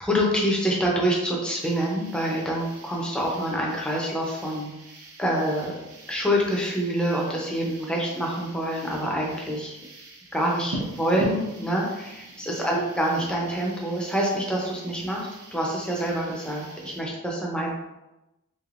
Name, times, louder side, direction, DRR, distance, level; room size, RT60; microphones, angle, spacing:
voice 1, 0.0-4.7 5.2-5.7 6.1-9.8 10.3-17.7, equal, 5° left, -3 dB, 0.6 m, -26 dB
sound 1, 1.6-17.0, right 1 dB, 85° right, 0.7 m, -43 dB
3.3 x 3.1 x 2.4 m, 0.97 s
head